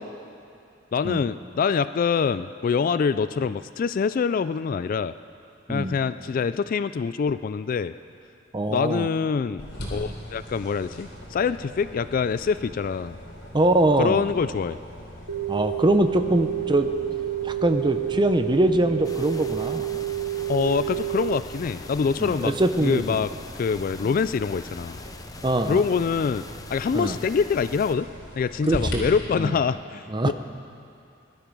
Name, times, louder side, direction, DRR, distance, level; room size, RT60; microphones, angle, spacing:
voice 1, 0.9-5.1 5.7-7.9 8.7-9.6 9.9-13.2 14.0-14.8 20.5-22.5 22.8-23.3 23.5-25.0 25.7-26.4 26.7-28.1 28.3-30.3, left 5 dB, 45° left, 14 dB, 0.3 m, -25 dB
voice 2, 8.5-9.1 13.5-14.2 15.5-16.9 17.4-19.9 22.2-23.2 24.0-24.1 25.4-25.8 26.9-27.2 28.7-29.0 29.4-29.6 30.1-30.3, right 1 dB, 25° right, 8 dB, 0.7 m, -23 dB
sound 1, 9.6-28.9, equal, 60° left, 3.5 m, -41 dB
sound 2, 15.3-21.4, right 13 dB, 75° right, 1.1 m, -29 dB
sound 3, 19.0-28.0, left 2 dB, 20° left, 0.7 m, -43 dB
20.5 x 12.0 x 5.3 m, 2.5 s
head